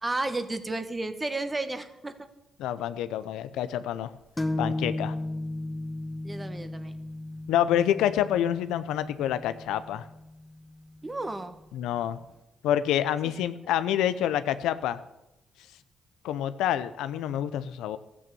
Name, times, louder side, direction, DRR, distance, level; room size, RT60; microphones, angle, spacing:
voice 1, 0.0-2.3 6.2-6.9 11.0-11.6 13.2-13.3, right 2 dB, 25° right, 10 dB, 1.4 m, -32 dB
voice 2, 2.6-4.1 4.6-5.1 7.5-10.1 11.7-12.2 12.6-15.0 16.2-18.0, left 11 dB, 85° left, 13 dB, 0.6 m, -27 dB
sound 1, 4.4-11.9, left 2 dB, 15° left, 1.3 m, -35 dB
13.5 x 8.7 x 6.9 m, 0.91 s
supercardioid pair, 60°, 0 cm